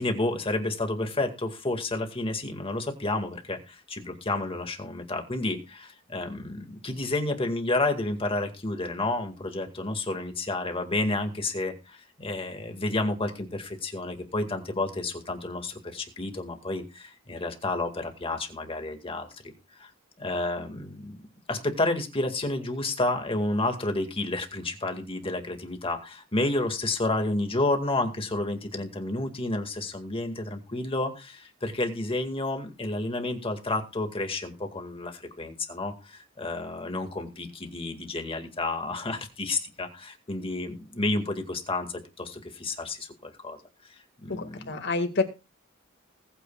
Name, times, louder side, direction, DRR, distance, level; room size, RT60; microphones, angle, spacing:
voice 1, 0.0-19.3 19.7-19.9 20.2-21.1 21.5-43.6 44.2-44.8, left 2 dB, 30° left, 5 dB, 2.0 m, -30 dB
voice 2, 44.3-45.2, left 3 dB, 60° left, 6 dB, 2.0 m, -28 dB
20.0 x 9.1 x 2.4 m, 0.30 s
head